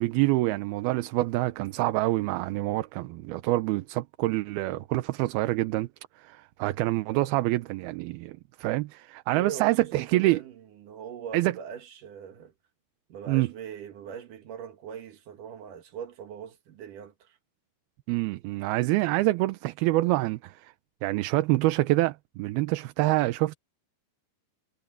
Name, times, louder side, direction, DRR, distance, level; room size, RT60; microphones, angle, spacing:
voice 1, 0.0-5.9 6.2-10.4 11.3-11.5 13.3-13.5 18.1-20.7 21.0-23.6, right 18 dB, 80° right, 2.6 m, -26 dB
voice 2, 9.3-12.5 13.1-17.4, right 8 dB, 60° right, 2.9 m, -41 dB
omnidirectional pair, 4.6 m